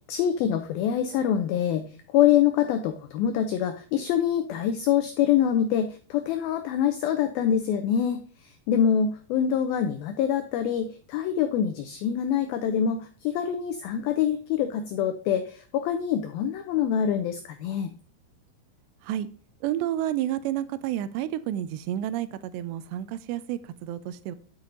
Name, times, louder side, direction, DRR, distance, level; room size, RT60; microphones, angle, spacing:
voice 1, 0.1-17.9, left 9 dB, 90° left, 2.1 m, -25 dB
voice 2, 19.6-24.4, right 12 dB, 80° right, 2.8 m, -30 dB
11.0 x 7.0 x 3.8 m
omnidirectional pair, 5.1 m